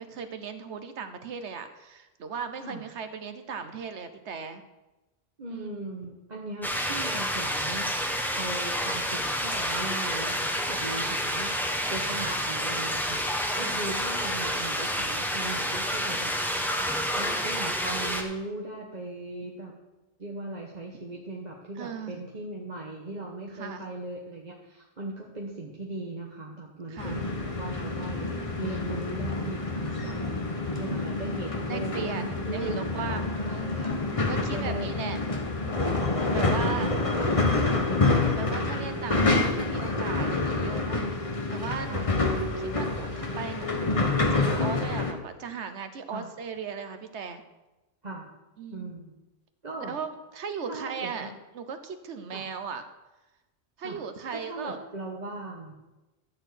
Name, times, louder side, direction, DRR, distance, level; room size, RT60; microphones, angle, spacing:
voice 1, 0.0-4.6 5.5-5.9 12.2-12.4 13.6-13.8 21.8-22.2 23.6-23.9 26.9-27.2 29.9-30.5 31.7-33.7 34.2-35.2 35.6-35.9 36.3-36.9 38.4-42.3 42.6-43.8 44.3-47.4 48.6-48.9 49.8-52.8 53.8-54.8, right 6 dB, 85° right, 9 dB, 1.2 m, -37 dB
voice 2, 5.4-7.9 8.3-11.5 11.9-16.3 17.1-19.7 20.2-30.2 30.8-33.0 33.3-34.0 34.3-34.9 36.2-38.0 38.6-39.3 41.9-42.1 46.1-46.3 48.0-48.3 48.7-49.1 49.6-50.0 50.6-51.3 52.3-52.4 53.8-54.0 54.3-55.8, right 2 dB, 40° right, -2 dB, 1.3 m, -38 dB
sound 1, 6.6-18.2, equal, ahead, 1.2 m, -29 dB
sound 2, 27.0-45.1, left 3 dB, 30° left, 1.1 m, -27 dB
13.5 x 4.5 x 8.0 m, 1.0 s
omnidirectional pair, 1.1 m